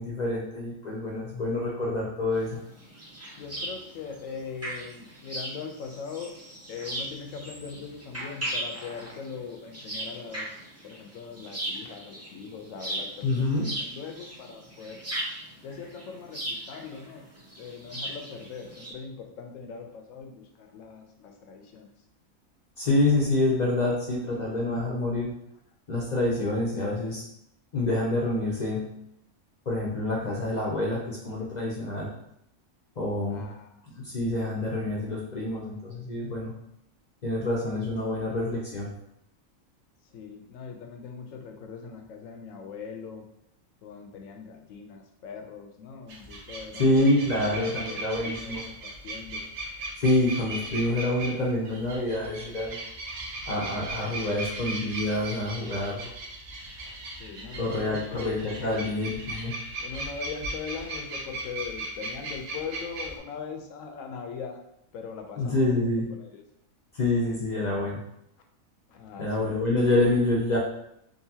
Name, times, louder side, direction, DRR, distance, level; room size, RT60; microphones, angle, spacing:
voice 1, 0.0-2.6 13.2-13.7 22.8-25.3 25.9-27.2 27.7-28.8 29.7-32.1 33.0-33.4 34.1-36.5 37.2-38.9 46.8-48.6 50.0-52.8 53.5-56.1 57.6-59.5 65.4-66.1 67.0-68.0 69.2-70.6, left 1 dB, 50° left, -3 dB, 0.5 m, -27 dB
sound 1, 2.3-18.9, right 1 dB, 15° right, 0.6 m, -38 dB
voice 2, 3.4-6.3 6.7-10.6 10.8-15.0 15.6-17.3 17.6-21.9 33.3-33.8 34.1-34.2 40.1-43.3 43.8-49.5 56.8-59.0 59.8-64.6 64.9-66.4 68.9-69.7, left 6 dB, 75° left, 3 dB, 1.0 m, -41 dB
sound 2, 46.1-63.2, right 2 dB, 75° right, 1.1 m, -38 dB
3.8 x 2.6 x 2.7 m, 0.75 s
omnidirectional pair, 1.4 m